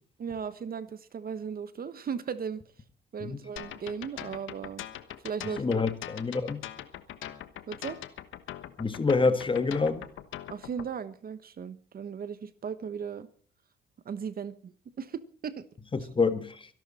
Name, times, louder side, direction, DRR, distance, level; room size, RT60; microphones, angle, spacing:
voice 1, 0.2-2.6 3.1-4.8 5.2-5.6 7.7-8.0 10.5-13.3 14.0-14.7 15.0-15.6 16.0-16.1, right 6 dB, 50° right, 1.2 m, -36 dB
sound 1, 3.6-10.9, left 12 dB, 80° left, 1.3 m, -41 dB
voice 2, 5.6-6.6 8.8-10.0 15.9-16.6, left 4 dB, 25° left, 1.6 m, -27 dB
24.0 x 11.5 x 4.3 m
cardioid pair, 90°, 20 cm